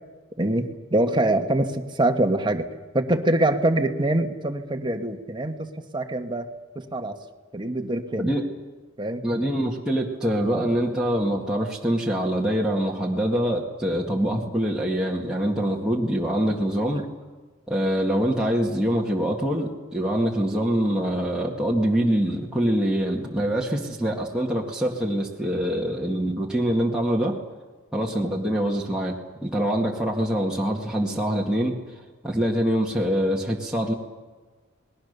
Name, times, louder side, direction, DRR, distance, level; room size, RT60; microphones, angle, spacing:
voice 1, 0.4-2.7 2.9-6.5 6.7-7.2 7.5-8.3 9.0-9.2, right 1 dB, 25° right, 5 dB, 1.6 m, -24 dB
voice 2, 9.2-17.1 17.7-27.4 27.9-29.1 29.4-32.0 32.2-33.9, equal, 5° right, -4 dB, 2.1 m, -24 dB
28.0 x 20.0 x 6.8 m, 1.3 s
head